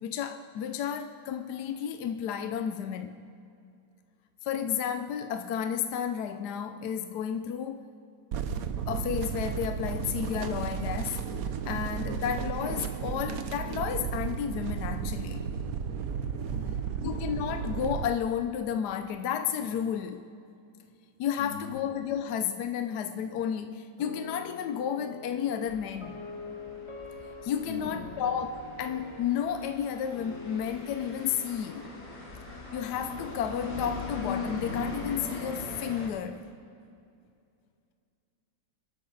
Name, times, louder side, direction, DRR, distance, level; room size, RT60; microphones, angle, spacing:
voice 1, 0.0-3.2 4.4-7.9 8.9-11.2 11.6-15.6 16.2-16.3 17.0-20.3 21.2-26.2 27.4-31.9 32.7-36.5, left 8 dB, 70° left, 1.2 m, -32 dB
sound 1, 8.3-18.1, right 7 dB, 60° right, 1.1 m, -33 dB
voice 2, 16.5-17.1 21.4-21.8 27.6-28.2, left 5 dB, 85° left, 2.8 m, -42 dB
sound 2, 24.0-33.2, left 3 dB, 20° left, 1.3 m, -45 dB
sound 3, 25.7-36.1, left 3 dB, 40° left, 2.9 m, -40 dB
24.0 x 13.0 x 4.0 m
omnidirectional pair, 2.0 m